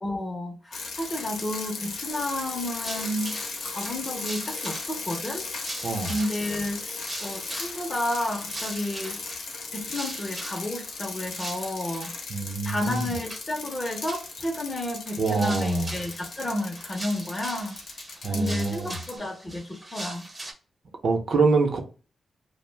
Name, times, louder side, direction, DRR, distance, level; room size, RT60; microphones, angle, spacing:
voice 1, 0.0-5.4 6.1-9.2 9.7-12.1 12.6-17.7 18.3-20.2, left 1 dB, 25° left, 0.5 m, -31 dB
sound 1, 0.7-19.1, left 4 dB, 75° left, 0.6 m, -37 dB
sound 2, 2.1-12.2 12.7-13.4 13.7-14.5 14.8-20.5, right 1 dB, 15° right, 0.6 m, -41 dB
voice 2, 5.8-6.1 12.3-13.1 15.2-15.9 18.2-19.0 21.0-21.8, right 3 dB, 60° right, 0.6 m, -25 dB
2.4 x 2.0 x 3.3 m
cardioid pair, 110°, 0 cm